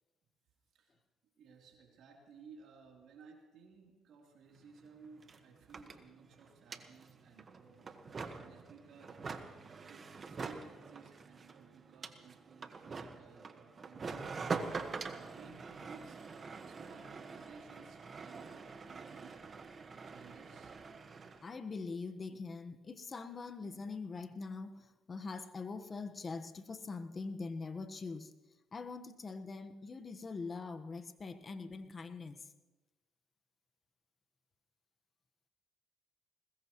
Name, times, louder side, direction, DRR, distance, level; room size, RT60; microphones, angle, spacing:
voice 1, 1.4-9.2 9.9-16.2 16.7-19.5 20.1-20.8, right 5 dB, 70° right, 0 dB, 3.5 m, -58 dB
sound 1, 4.5-4.6 4.8-21.4, right 4 dB, 40° right, 1.5 m, -45 dB
voice 2, 21.4-28.3 28.7-32.4, left 4 dB, 35° left, 8 dB, 1.3 m, -43 dB
21.0 x 20.5 x 3.1 m, 1.2 s
supercardioid pair, 75°, 0 cm